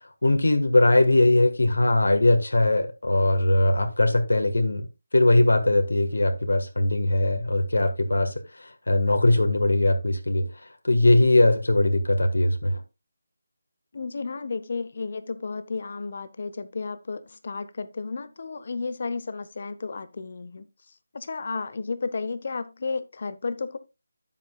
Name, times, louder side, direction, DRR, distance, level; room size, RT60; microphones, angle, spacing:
voice 1, 0.2-4.9 5.1-10.5 10.8-12.8, left 2 dB, 80° left, 1.4 m, -20 dB
voice 2, 13.9-20.7 21.1-23.8, left 4 dB, 50° left, 0.9 m, -32 dB
10.5 x 7.5 x 2.3 m
figure-of-eight pair, 160°, 0 cm